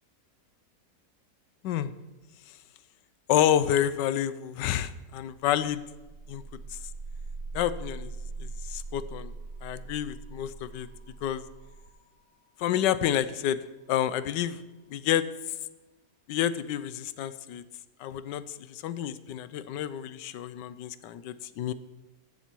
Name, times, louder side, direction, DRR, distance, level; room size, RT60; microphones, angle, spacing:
voice 1, 3.3-5.8 6.3-6.4 6.7-6.8 7.5-8.1 8.4-9.3 9.6-10.9 11.2-11.4 12.6-13.6 13.9-14.6 14.9-15.2 16.3-17.6 18.0-21.7, left 10 dB, 90° left, 14 dB, 1.2 m, -29 dB
sound 1, 6.0-15.3, right 3 dB, 70° right, 1.6 m, -43 dB
14.0 x 7.2 x 4.5 m, 1.1 s
omnidirectional pair, 1.8 m